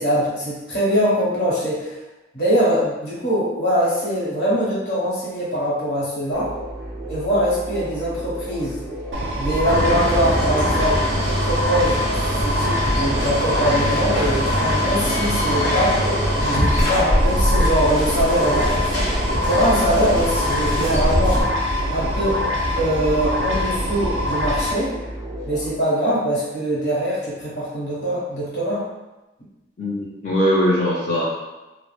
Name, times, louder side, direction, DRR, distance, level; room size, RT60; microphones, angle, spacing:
voice 1, 0.0-1.9 2.3-6.5 7.1-8.8 9.4-11.1 11.4-12.0 12.4-16.0 16.5-18.9 19.4-21.4 21.9-22.4 22.8-24.9 25.5-28.8, equal, 70° left, -7 dB, 0.9 m, -22 dB
sound 1, 6.3-25.7, right 1 dB, 15° right, 0.5 m, -33 dB
sound 2, 9.1-24.7, left 1 dB, 85° right, 0.4 m, -24 dB
sound 3, 9.7-21.4, equal, 85° left, 0.7 m, -23 dB
voice 2, 29.8-31.2, equal, 40° left, -9 dB, 0.5 m, -20 dB
2.2 x 2.0 x 3.0 m, 1.0 s
head